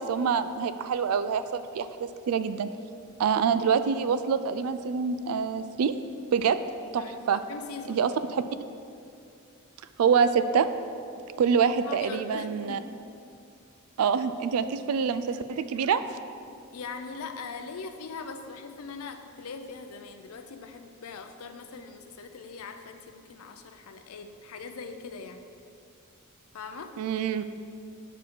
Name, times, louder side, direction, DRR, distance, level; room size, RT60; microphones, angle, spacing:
voice 1, 0.0-2.7 3.2-5.9 6.3-6.6 6.9-7.4 7.9-8.4 10.0-10.7 11.4-12.8 14.0-16.0 27.0-27.4, right 6 dB, 90° right, 12 dB, 0.3 m, -26 dB
voice 2, 7.0-8.1 11.8-12.8 16.7-25.4 26.5-26.9, left 4 dB, 85° left, 7 dB, 0.5 m, -41 dB
6.4 x 4.6 x 5.2 m, 2.4 s
head